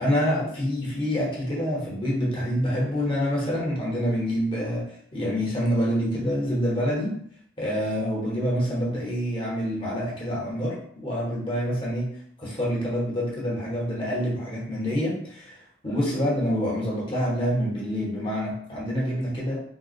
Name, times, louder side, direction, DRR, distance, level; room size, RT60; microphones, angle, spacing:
voice 1, 0.0-4.9 5.1-7.2 7.6-12.1 12.4-19.6, equal, 30° left, -5 dB, 0.9 m, -27 dB
3.7 x 2.3 x 2.5 m, 0.63 s
head